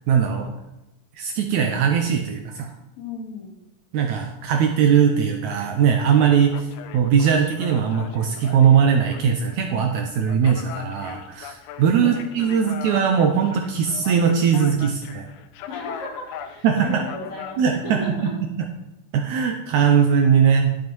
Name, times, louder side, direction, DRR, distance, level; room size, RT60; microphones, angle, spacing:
voice 1, 0.1-0.6 1.2-2.7 3.9-6.7 6.9-15.3 16.6-17.1 17.6-18.0 19.1-20.7, right 7 dB, 75° right, 3 dB, 1.8 m, -20 dB
voice 2, 3.0-3.5 12.0-12.6 15.7-18.3, left 3 dB, 55° left, -5 dB, 3.9 m, -35 dB
sound 1, 6.0-18.0, left 8 dB, 80° left, 1.9 m, -40 dB
11.5 x 7.2 x 3.1 m, 0.96 s
omnidirectional pair, 3.8 m